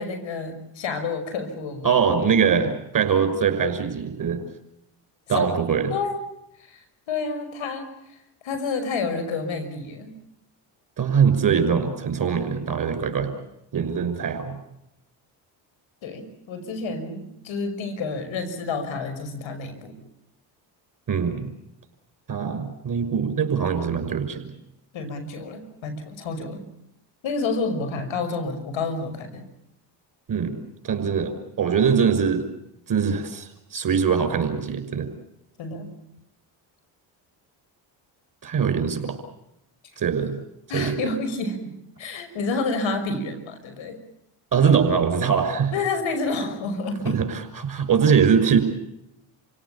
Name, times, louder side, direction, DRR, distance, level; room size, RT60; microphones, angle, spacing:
voice 1, 0.0-2.0 5.3-5.5 5.9-6.2 6.6-7.9 8.4-10.2 16.0-20.0 24.9-26.6 27.2-29.4 35.6-35.9 40.7-44.0 45.7-47.2, left 3 dB, 65° left, 8 dB, 5.9 m, -29 dB
voice 2, 1.8-4.4 5.3-5.9 11.0-13.3 13.7-14.5 21.1-21.5 22.3-24.5 30.3-32.5 32.9-35.1 38.4-39.2 40.0-40.4 40.7-41.1 44.5-45.7 47.0-48.6, right 6 dB, 40° right, 8 dB, 6.0 m, -22 dB
28.5 x 17.5 x 8.6 m, 0.82 s
supercardioid pair, 70°, 49 cm